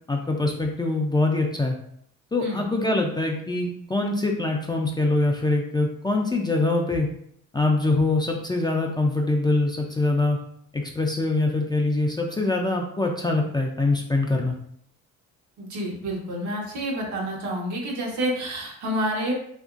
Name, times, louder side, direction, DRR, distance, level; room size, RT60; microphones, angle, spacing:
voice 1, 0.1-1.8 2.3-7.1 7.5-10.4 10.7-14.5, left 2 dB, 15° left, 1 dB, 0.3 m, -24 dB
voice 2, 15.6-19.3, equal, 70° right, -1 dB, 0.9 m, -29 dB
2.8 x 2.5 x 2.4 m, 0.68 s
cardioid pair, 90°, 30 cm